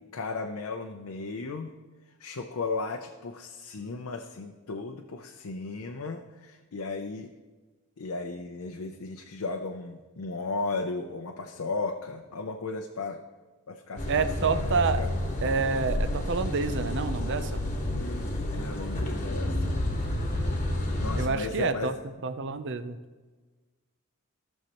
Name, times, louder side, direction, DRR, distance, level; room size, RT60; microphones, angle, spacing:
voice 1, 0.1-1.7 2.2-7.3 8.0-13.2 13.7-14.1 14.4-15.2 17.9-19.8 21.0-21.9, left 3 dB, 75° left, 4 dB, 0.6 m, -35 dB
sound 1, 14.0-21.3, left 1 dB, 35° left, 1.2 m, -30 dB
voice 2, 14.1-15.0 15.4-17.6 21.2-21.9 22.2-23.0, right 4 dB, 55° right, 10 dB, 0.5 m, -28 dB
16.0 x 6.5 x 2.9 m, 1.3 s
head